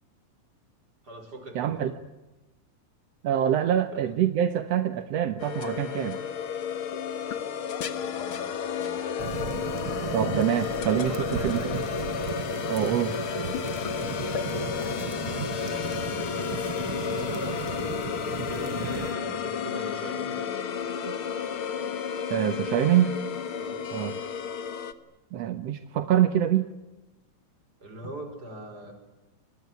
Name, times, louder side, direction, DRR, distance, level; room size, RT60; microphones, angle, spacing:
voice 1, 1.0-1.9 3.4-3.5 3.9-4.1 7.9-9.1 11.0-11.8 14.0-14.9 17.1-17.7 18.3-20.4 23.6-23.8 27.8-28.9, right 2 dB, 25° right, 7 dB, 6.0 m, -42 dB
voice 2, 1.6-1.9 3.2-6.2 10.1-11.1 11.4-11.6 12.7-13.2 15.4-15.5 22.3-23.1 23.9-24.1 25.3-26.7, right 10 dB, 65° right, 9 dB, 1.8 m, -25 dB
sound 1, 5.4-24.9, left 7 dB, 55° left, 1.6 m, -32 dB
sound 2, 9.2-19.1, right 9 dB, 80° right, 1.2 m, -36 dB
27.5 x 21.5 x 9.7 m, 1.1 s
omnidirectional pair, 4.2 m